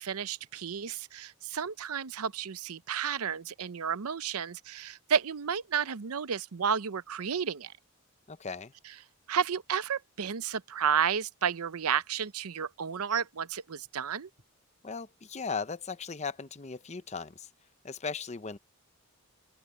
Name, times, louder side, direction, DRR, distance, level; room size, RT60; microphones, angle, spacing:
voice 1, 0.0-7.7 9.3-14.3, right 7 dB, 80° right, 0.6 m, -32 dB
voice 2, 8.3-8.7 14.8-17.5 17.8-18.6, left 5 dB, 30° left, 0.7 m, -37 dB
sound 1, 11.8-12.3 13.1-14.7 15.4-15.5, right 15 dB, 50° right, 4.5 m, -51 dB
open air
head